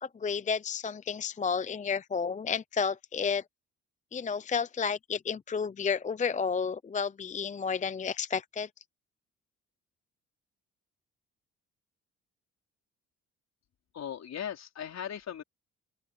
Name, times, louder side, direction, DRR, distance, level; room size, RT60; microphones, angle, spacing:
voice 1, 0.0-3.4 4.1-8.7, left 6 dB, 25° left, 0.6 m, -31 dB
voice 2, 13.9-15.4, left 9 dB, 60° left, 4.5 m, -38 dB
open air
cardioid pair, 90°, 30 cm